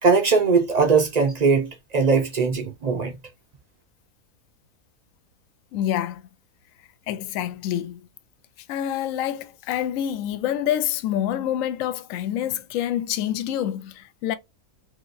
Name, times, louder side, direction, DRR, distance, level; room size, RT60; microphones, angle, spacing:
voice 1, 0.0-3.2, right 5 dB, 65° right, 0.4 m, -20 dB
voice 2, 5.7-6.2 7.1-8.0 8.7-14.3, left 11 dB, 70° left, 0.9 m, -27 dB
3.0 x 2.8 x 2.5 m
omnidirectional pair, 1.6 m